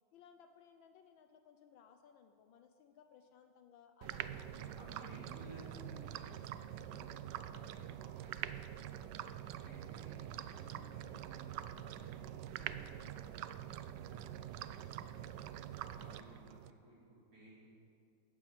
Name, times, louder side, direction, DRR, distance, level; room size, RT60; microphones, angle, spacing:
voice 1, 0.1-5.0 6.9-8.0 8.9-9.6 11.0-11.3, left 7 dB, 70° left, 7 dB, 1.4 m, -63 dB
sound 1, 4.0-16.7, right 11 dB, 80° right, 1.0 m, -45 dB
voice 2, 4.3-8.7 9.6-13.5 13.9-17.7, right 1 dB, 40° right, -6 dB, 4.4 m, -58 dB
13.0 x 8.7 x 8.7 m, 2.3 s
omnidirectional pair, 2.4 m